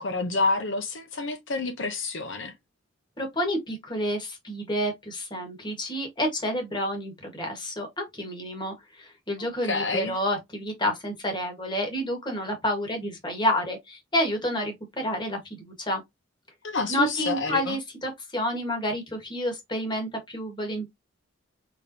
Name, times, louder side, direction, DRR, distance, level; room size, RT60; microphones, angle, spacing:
voice 1, 0.0-2.5 9.6-10.2 16.6-17.8, left 3 dB, 70° left, 0.8 m, -28 dB
voice 2, 3.2-16.0 16.9-20.9, equal, 25° left, 1.4 m, -29 dB
4.3 x 3.4 x 2.6 m
head